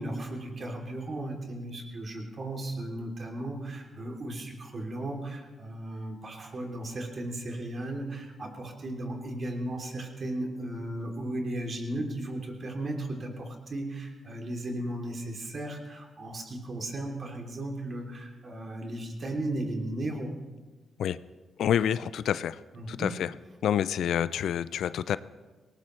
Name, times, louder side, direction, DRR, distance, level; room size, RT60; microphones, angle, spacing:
voice 1, 0.0-20.3 22.7-23.1, right 1 dB, 45° right, 1 dB, 3.0 m, -35 dB
voice 2, 21.6-22.6 22.9-23.3 23.6-25.2, left 9 dB, 80° left, 16 dB, 0.4 m, -27 dB
19.0 x 18.0 x 3.2 m, 1.3 s
cardioid pair, 70°, 0 cm